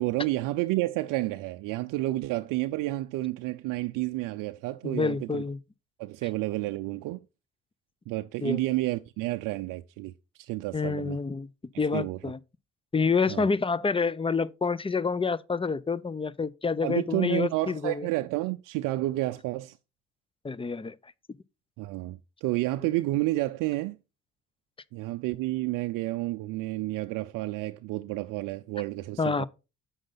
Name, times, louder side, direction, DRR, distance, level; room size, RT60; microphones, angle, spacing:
voice 1, 0.0-5.4 6.0-7.2 8.1-10.1 10.4-11.2 11.9-12.2 13.3-13.5 16.8-19.8 21.8-24.0 24.9-29.5, right 18 dB, 75° right, 0.5 m, -30 dB
voice 2, 4.8-5.6 8.4-8.6 10.7-11.5 11.8-12.4 12.9-18.1 20.4-21.4 29.2-29.5, left 4 dB, 15° left, 0.6 m, -28 dB
7.9 x 6.3 x 3.9 m
supercardioid pair, 65°, 32 cm